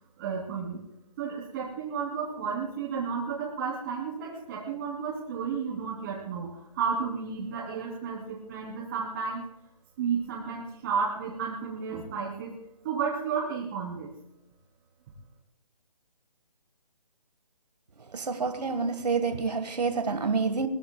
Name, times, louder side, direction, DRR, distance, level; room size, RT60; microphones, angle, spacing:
voice 1, 0.2-0.8 1.2-9.5 10.0-12.5 12.8-14.1, right 6 dB, 25° right, 3.4 m, -32 dB
voice 2, 18.1-20.7, right 4 dB, 75° right, 1.7 m, -28 dB
24.0 x 18.0 x 2.3 m
hypercardioid pair, 160°, 21 cm